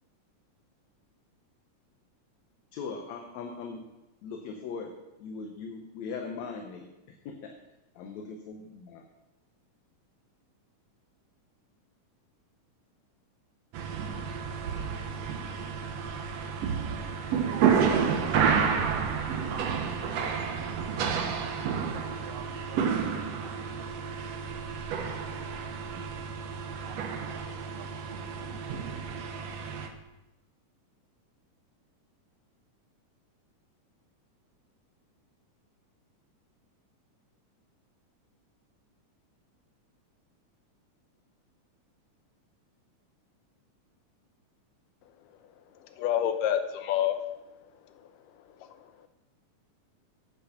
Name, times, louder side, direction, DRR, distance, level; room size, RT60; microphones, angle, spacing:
voice 1, 2.7-3.8 4.2-6.9 7.3-7.5 8.0-9.0, left 5 dB, 70° left, 3 dB, 2.0 m, -39 dB
sound 1, 13.7-29.9, right 6 dB, 65° right, 1.8 m, -30 dB
voice 2, 14.4-28.8, right 9 dB, 90° right, 8 dB, 2.5 m, -48 dB
voice 3, 45.8-47.3 48.6-49.1, left 10 dB, 85° left, 8 dB, 2.4 m, -29 dB
8.8 x 8.3 x 5.7 m, 0.98 s
omnidirectional pair, 3.7 m